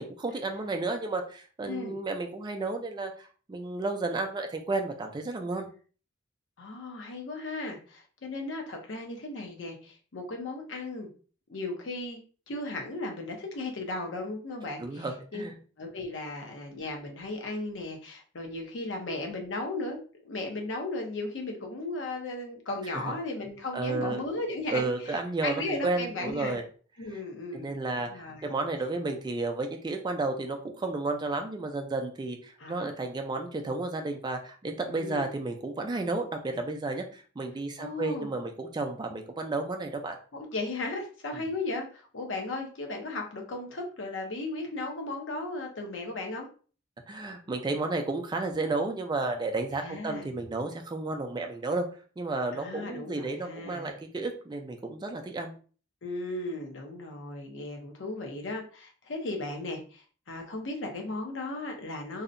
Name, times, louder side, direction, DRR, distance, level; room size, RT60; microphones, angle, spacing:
voice 1, 0.0-5.7 14.8-15.6 22.9-23.1 23.7-24.2 24.7-26.6 27.5-40.2 47.1-51.9 52.2-55.5, right 3 dB, 20° right, 4 dB, 0.3 m, -32 dB
voice 2, 1.6-2.0 6.6-11.1 11.5-12.2 12.5-15.1 15.3-15.4 15.8-26.6 27.0-27.8 28.0-28.5 32.6-32.9 34.8-35.3 37.8-38.3 40.3-46.5 49.8-50.3 52.5-53.9 56.0-62.2, left 2 dB, 70° left, 2 dB, 0.6 m, -36 dB
2.7 x 2.1 x 2.5 m, 0.40 s
head